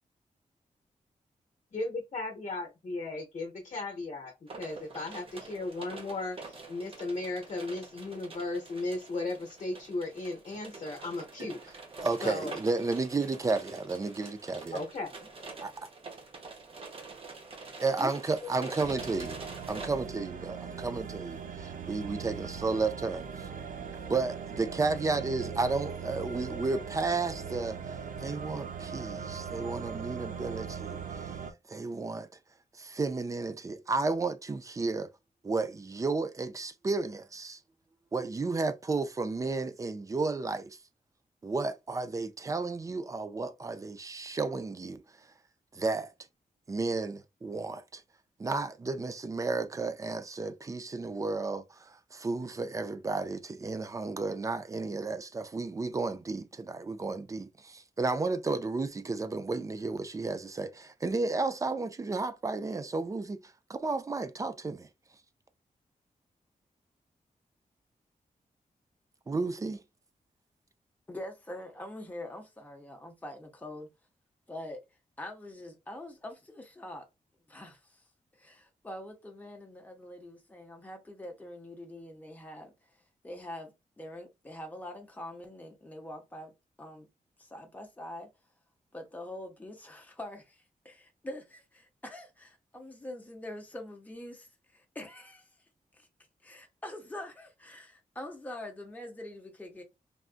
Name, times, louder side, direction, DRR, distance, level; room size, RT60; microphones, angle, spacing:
voice 1, 1.7-4.3 4.6-6.4 6.7-11.6 12.2-12.6 14.7-15.3 18.0-18.1, left 2 dB, 45° left, 0.8 m, -36 dB
sound 1, 4.5-19.9, right 3 dB, 40° right, 0.9 m, -46 dB
voice 2, 12.0-14.8 15.6-15.9 17.8-19.4 19.7-23.5 24.1-27.9 28.2-31.4 31.7-32.3 32.8-35.1 35.4-37.6 38.1-40.8 41.4-45.0 45.7-46.1 46.7-48.0 48.4-63.4 63.7-64.9 69.3-69.8, right 3 dB, 25° right, 0.3 m, -32 dB
sound 2, 18.8-31.5, right 6 dB, 75° right, 0.6 m, -40 dB
voice 3, 71.1-73.9 74.5-74.8 75.2-77.1 77.5-78.0 78.4-82.9 83.2-83.7 84.0-86.5 86.8-87.1 87.4-88.3 88.9-95.5 95.9-96.1 96.4-99.8, left 1 dB, 10° left, 0.8 m, -44 dB
3.4 x 2.5 x 2.4 m
wide cardioid pair, 170°, 14 cm